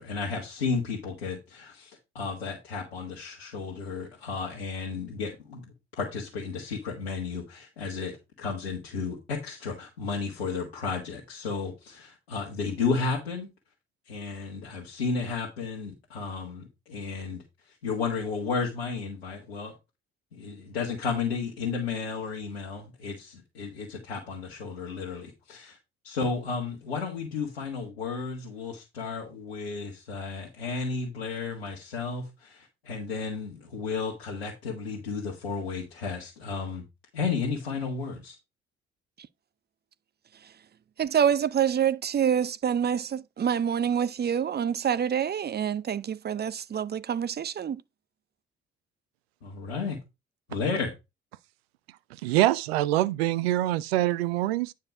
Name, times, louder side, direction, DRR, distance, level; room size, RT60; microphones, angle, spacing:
voice 1, 0.0-5.6 6.0-13.5 14.1-19.7 20.3-25.8 26.0-36.8 37.1-38.3 49.4-50.0 50.5-50.9, left 4 dB, 90° left, 1.6 m, -33 dB
voice 2, 41.0-47.8, right 8 dB, 35° right, 0.6 m, -26 dB
voice 3, 52.2-54.7, right 15 dB, 85° right, 0.5 m, -24 dB
9.6 x 4.6 x 4.7 m
hypercardioid pair, 45°, 30 cm